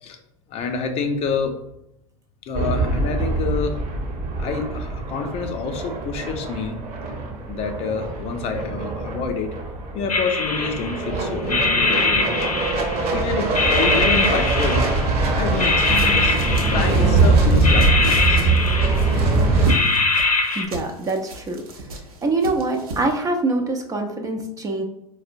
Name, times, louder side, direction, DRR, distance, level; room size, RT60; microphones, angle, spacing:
voice 1, 0.5-1.5 2.5-3.8 4.4-6.8 7.5-9.5 9.9-12.6 13.1-14.9 15.3-16.4 16.7-18.5, left 5 dB, 35° left, 5 dB, 0.5 m, -27 dB
sound 1, 2.5-19.8, right 3 dB, 35° right, 0.7 m, -22 dB
sound 2, 10.1-11.1 11.5-13.1 13.5-15.2 15.6-17.2 17.6-19.3 19.7-20.6, left 3 dB, 90° left, 0.5 m, -22 dB
sound 3, 15.8-23.2, right 2 dB, 70° right, 0.7 m, -36 dB
voice 2, 20.6-21.6 22.2-24.8, right 2 dB, 20° right, 3 dB, 0.4 m, -24 dB
4.2 x 2.0 x 2.5 m, 0.83 s
figure-of-eight pair, 85°, 19 cm